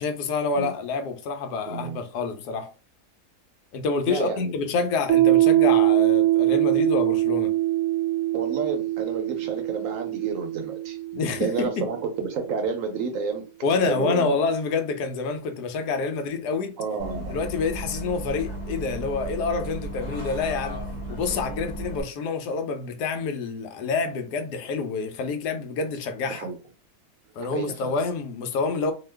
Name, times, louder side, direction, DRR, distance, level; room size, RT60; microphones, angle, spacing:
voice 1, 0.0-2.7 3.7-7.5 11.1-11.8 13.6-16.7 17.3-26.5 27.3-28.9, left 4 dB, 85° left, 1.2 m, -27 dB
voice 2, 1.7-2.0 4.1-4.5 8.3-11.0 11.4-14.4 16.8-17.4 26.3-26.6 27.4-27.9, right 5 dB, 70° right, 0.8 m, -30 dB
Piano, 5.1-12.3, right 16 dB, 85° right, 1.2 m, -23 dB
Bus, 17.0-22.0, right 1 dB, 15° left, 1.0 m, -34 dB
2.8 x 2.2 x 3.3 m
omnidirectional pair, 1.7 m